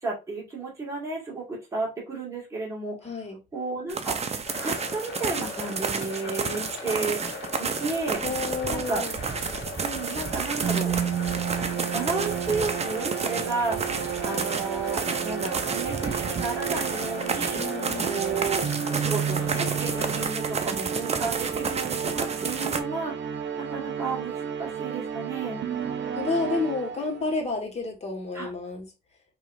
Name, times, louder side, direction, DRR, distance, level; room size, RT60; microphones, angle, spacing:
voice 1, 0.0-3.0 3.5-4.2 4.6-7.2 7.6-8.2 8.7-9.0 9.8-10.9 11.9-17.6 18.1-18.6 18.9-23.3 23.6-25.6 28.3-28.5, right 3 dB, 15° right, -5 dB, 2.1 m, -32 dB
voice 2, 3.0-3.4 8.2-9.2 17.6-18.2 26.1-28.9, left 3 dB, 35° left, 2 dB, 1.7 m, -30 dB
sound 1, 3.9-22.8, right 5 dB, 30° right, 0.6 m, -31 dB
sound 2, 4.4-20.3, left 4 dB, 80° left, 1.8 m, -39 dB
sound 3, 10.6-27.4, right 8 dB, 65° right, 0.8 m, -32 dB
4.7 x 3.1 x 2.6 m, 0.27 s
cardioid pair, 90°, 20 cm